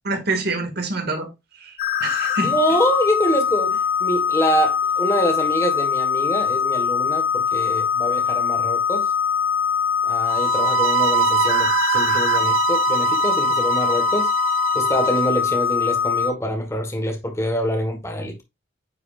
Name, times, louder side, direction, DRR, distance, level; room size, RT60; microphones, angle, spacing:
voice 1, 0.1-1.3 1.5-2.6, right 3 dB, 55° right, 1.9 m, -26 dB
sound 1, 1.8-16.3, left 7 dB, 45° left, 0.9 m, -22 dB
voice 2, 2.4-9.1 10.0-14.3 14.7-18.4, equal, 15° left, 1.4 m, -25 dB
sound 2, 10.3-15.3, right 8 dB, 80° right, 0.6 m, -23 dB
9.6 x 4.9 x 2.4 m
head